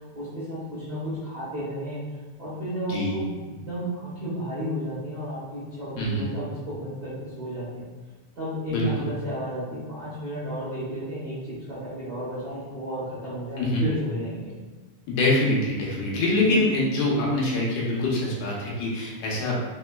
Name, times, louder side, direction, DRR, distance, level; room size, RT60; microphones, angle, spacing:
voice 1, 0.1-2.0 2.4-7.8 8.3-14.6, equal, 45° right, -12 dB, 1.4 m, -33 dB
voice 2, 6.0-6.3 8.7-9.0 13.6-13.8 15.1-19.6, left 2 dB, 75° left, -4 dB, 2.2 m, -24 dB
4.3 x 4.2 x 2.3 m, 1.3 s
omnidirectional pair, 3.5 m